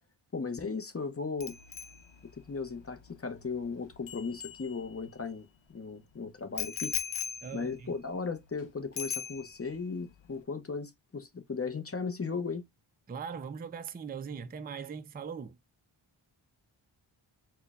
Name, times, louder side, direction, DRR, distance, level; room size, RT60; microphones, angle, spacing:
voice 1, 0.3-1.6 2.5-7.0 7.5-12.6, left 4 dB, 30° left, 0.6 m, -36 dB
Bicycle bell, 1.4-5.2 6.6-8.6 9.0-9.8 10.1-10.4, left 7 dB, 65° left, 0.7 m, -40 dB
voice 2, 7.4-8.0 13.1-15.6, right 6 dB, 20° right, 0.3 m, -40 dB
4.4 x 2.1 x 3.5 m
wide cardioid pair, 80°, 50 cm